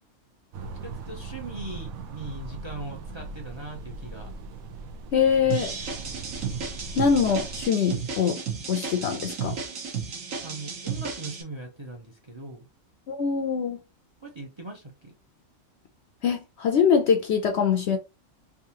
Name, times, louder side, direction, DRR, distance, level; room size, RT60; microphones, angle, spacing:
sound 1, 0.5-7.7, right 3 dB, 90° right, 1.1 m, -39 dB
voice 1, 0.6-4.3 5.4-5.5 10.4-12.7 14.2-15.1, right 2 dB, 25° right, 0.7 m, -40 dB
voice 2, 5.1-5.8 7.0-8.4 8.7-9.6 13.1-13.8 16.2-18.0, left 6 dB, 65° left, 0.7 m, -23 dB
sound 2, 5.5-11.4, right 6 dB, 70° right, 1.4 m, -33 dB
3.6 x 2.7 x 2.8 m
omnidirectional pair, 1.4 m